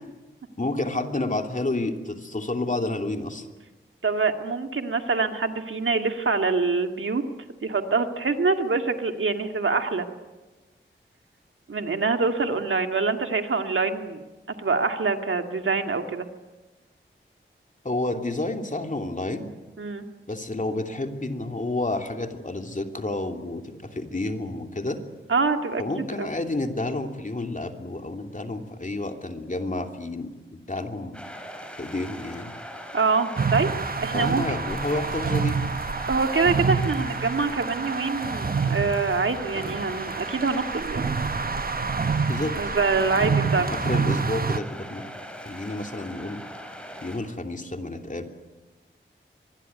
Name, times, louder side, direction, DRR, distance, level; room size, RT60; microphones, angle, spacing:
voice 1, 0.6-3.5 17.8-19.5 20.3-25.0 25.8-31.2 31.8-32.5 34.1-35.7 42.3-42.6 43.2-45.0 45.4-46.4 47.0-48.3, left 2 dB, 40° left, 5 dB, 3.0 m, -30 dB
voice 2, 4.0-7.2 7.6-10.1 11.7-14.2 14.6-16.3 19.8-20.1 25.3-25.8 26.2-26.3 32.9-33.7 34.0-34.4 36.1-41.1 42.6-43.7, right 4 dB, 75° right, 6 dB, 2.1 m, -25 dB
sound 1, 31.1-47.2, equal, 5° left, 6.5 m, -41 dB
sound 2, 33.4-44.6, right 5 dB, 45° right, 1.0 m, -27 dB
24.5 x 21.0 x 9.5 m, 1.2 s
wide cardioid pair, 65°, 21 cm